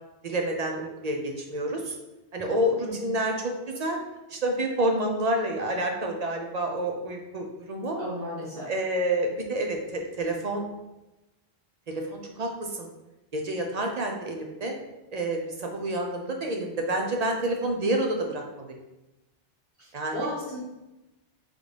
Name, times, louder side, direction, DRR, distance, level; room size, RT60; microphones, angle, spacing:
voice 1, 0.2-2.0 2.3-4.0 4.3-8.0 8.7-10.6 11.9-12.9 13.3-14.7 15.1-18.8 19.9-20.2, right 1 dB, 50° right, 2 dB, 0.5 m, -28 dB
voice 2, 8.0-8.7 19.8-20.6, equal, 70° right, -8 dB, 2.0 m, -34 dB
3.9 x 3.4 x 3.2 m, 1.0 s
omnidirectional pair, 1.0 m